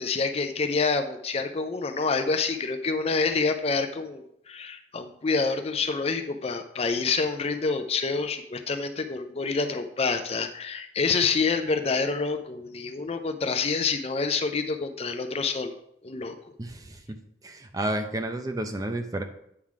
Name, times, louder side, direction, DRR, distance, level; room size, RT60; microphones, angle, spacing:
voice 1, 0.0-15.8 16.0-16.4, left 4 dB, 35° left, 8 dB, 0.5 m, -27 dB
voice 2, 16.6-17.2 17.4-19.2, right 1 dB, 20° right, 6 dB, 0.6 m, -31 dB
8.7 x 3.9 x 4.7 m, 0.73 s
head